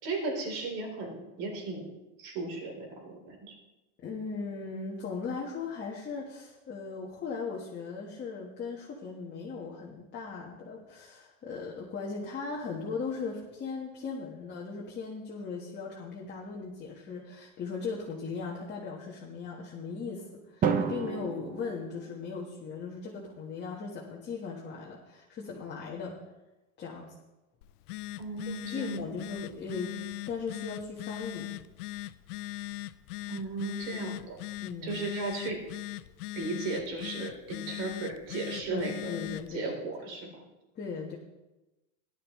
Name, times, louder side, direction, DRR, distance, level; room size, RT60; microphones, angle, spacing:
voice 1, 0.0-1.9 2.2-3.6 28.2-29.1 33.3-34.4 34.8-35.6 36.4-38.9 39.5-40.4, right 3 dB, 65° right, 0 dB, 3.7 m, -36 dB
voice 2, 4.0-26.2 26.8-27.1 28.5-30.0 30.3-31.5 34.6-35.0 38.7-39.7 40.7-41.2, left 4 dB, 25° left, -4 dB, 1.4 m, -38 dB
Drum, 20.6-22.7, right 6 dB, 20° right, 0.6 m, -32 dB
Telephone, 27.6-39.6, left 16 dB, 85° left, 0.6 m, -40 dB
15.0 x 11.5 x 3.2 m, 1.0 s
supercardioid pair, 140°, 45 cm